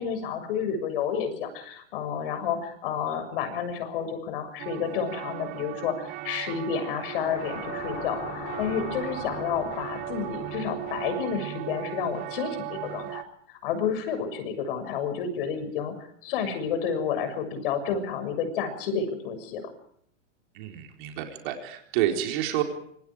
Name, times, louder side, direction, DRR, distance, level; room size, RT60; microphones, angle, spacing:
voice 1, 0.0-5.9 6.2-13.2 13.5-19.7, left 7 dB, 45° left, 10 dB, 6.9 m, -30 dB
sound 1, 4.6-13.3, right 15 dB, 20° right, 1.0 m, -37 dB
sound 2, 6.7-11.2, left 6 dB, 30° left, 6.2 m, -41 dB
voice 2, 20.5-22.6, right 12 dB, 40° right, 3 dB, 4.2 m, -29 dB
26.5 x 26.0 x 4.9 m, 0.69 s
supercardioid pair, 165°, 37 cm